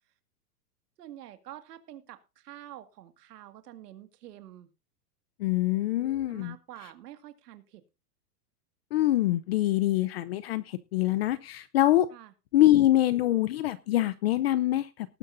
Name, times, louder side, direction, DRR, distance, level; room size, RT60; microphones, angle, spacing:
voice 1, 1.0-4.7 6.3-7.8 12.1-12.3, right 13 dB, 70° right, 9 dB, 2.1 m, -47 dB
voice 2, 5.4-6.5 8.9-12.1 12.5-15.2, left 14 dB, 40° left, 16 dB, 0.6 m, -25 dB
19.0 x 9.7 x 2.6 m, 0.28 s
supercardioid pair, 160°, 49 cm